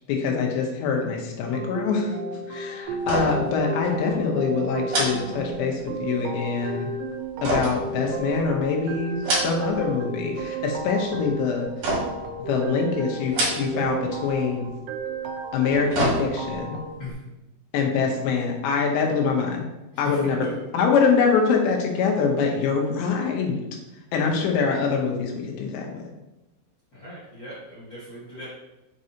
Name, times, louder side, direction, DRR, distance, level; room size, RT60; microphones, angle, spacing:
voice 1, 0.1-2.2 2.5-6.9 7.4-11.7 12.4-14.7 15.5-16.8 17.7-19.7 20.0-20.5 20.7-23.6 24.1-26.0, left 5 dB, 85° left, 1 dB, 3.2 m, -24 dB
sound 1, 1.5-16.9, right 3 dB, 80° right, 2.2 m, -33 dB
sound 2, 3.0-3.6 3.8-4.0 4.9-6.0 7.4-8.5 9.1-9.9 10.2-10.7 11.8-12.3 13.2-14.0 14.2-14.4 15.5-16.6 17.1-17.2, right 1 dB, 50° right, 2.2 m, -27 dB
voice 2, 17.0-17.3 19.9-20.5 24.2-24.6 26.9-28.5, left 1 dB, 55° left, -11 dB, 1.4 m, -38 dB
6.3 x 5.3 x 2.8 m, 1.0 s
omnidirectional pair, 5.0 m